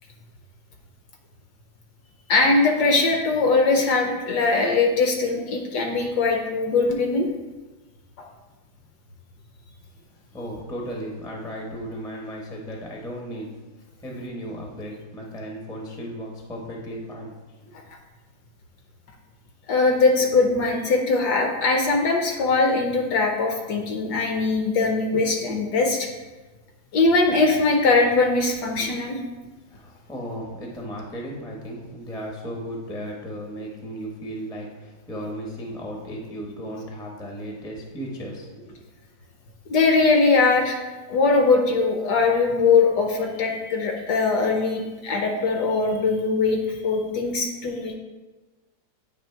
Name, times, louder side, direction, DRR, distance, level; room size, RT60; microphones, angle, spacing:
voice 1, 2.3-7.3 19.7-26.1 26.9-29.2 39.7-40.8 41.1-47.9, left 3 dB, 65° left, 2 dB, 1.1 m, -21 dB
voice 2, 10.3-13.5 14.0-17.4 17.6-17.7 29.7-38.8, equal, 5° left, -1 dB, 0.3 m, -35 dB
8.7 x 3.1 x 4.4 m, 1.2 s
omnidirectional pair, 2.2 m